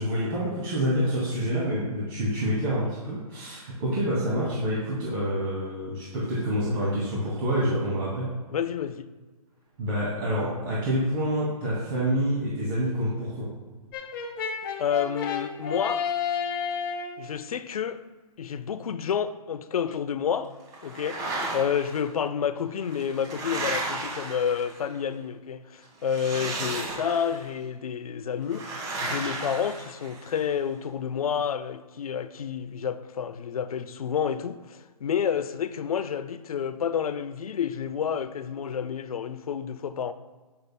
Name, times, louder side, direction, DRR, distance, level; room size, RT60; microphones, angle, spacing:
voice 1, 0.0-8.3 9.8-13.5, equal, 35° right, 2.3 m, -27 dB
voice 2, 8.5-9.1 14.8-16.1 17.2-18.0 18.4-20.5 20.8-21.2 21.5-28.7 29.0-40.1, left 8 dB, 65° left, 0.5 m, -29 dB
Brass instrument, 13.9-17.2, left 7 dB, 35° left, 1.1 m, -31 dB
sound 1, 20.7-22.0 22.8-25.0 26.0-27.5 28.5-30.4, right 2 dB, 20° right, 1.5 m, -34 dB
9.7 x 6.6 x 2.2 m
hypercardioid pair, 145°, 20 cm